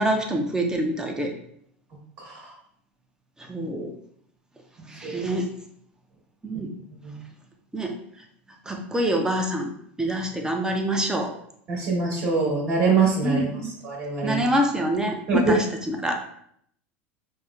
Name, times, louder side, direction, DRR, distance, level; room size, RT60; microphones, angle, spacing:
voice 1, 0.0-1.3 3.5-3.9 4.9-5.5 6.4-6.7 7.7-7.9 8.7-9.7 10.0-11.3 13.2-13.8 14.2-16.2, right 1 dB, 10° right, 3 dB, 0.6 m, -26 dB
voice 2, 2.2-2.5 5.0-5.2 7.0-7.2 11.7-13.5 13.8-14.4 15.3-15.6, right 3 dB, 40° right, -5 dB, 1.4 m, -23 dB
5.3 x 2.1 x 2.3 m, 0.67 s
hypercardioid pair, 90°, 7 cm